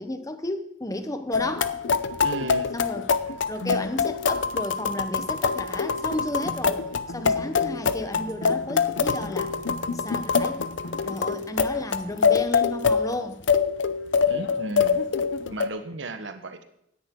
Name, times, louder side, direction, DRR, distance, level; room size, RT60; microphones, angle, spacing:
voice 1, 0.0-1.7 2.7-3.1 3.5-6.8 7.1-9.5 9.9-10.6 11.0-13.4, left 1 dB, 20° left, 9 dB, 0.9 m, -33 dB
sound 1, 1.3-15.7, left 5 dB, 80° left, 0.7 m, -25 dB
voice 2, 2.2-2.7 14.3-15.0 15.5-16.6, right 2 dB, 80° right, 8 dB, 1.2 m, -35 dB
16.5 x 10.0 x 3.8 m, 0.76 s
head